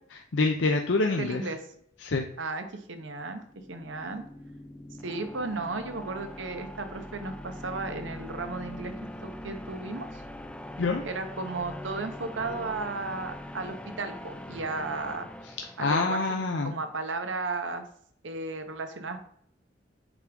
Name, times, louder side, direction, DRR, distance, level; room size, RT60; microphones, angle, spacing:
voice 1, 0.1-1.4 2.0-2.2 10.8-11.0 15.8-16.7, left 3 dB, 75° left, 3 dB, 0.6 m, -26 dB
voice 2, 1.0-1.6 2.4-3.4 3.7-4.2 5.0-8.9 9.2-10.2 11.0-15.3 15.8-16.2 16.6-17.8 18.2-19.2, right 3 dB, 85° right, 7 dB, 1.0 m, -34 dB
sound 1, 3.4-16.3, left 1 dB, 5° left, 0.4 m, -42 dB
7.2 x 5.3 x 3.5 m, 0.65 s
head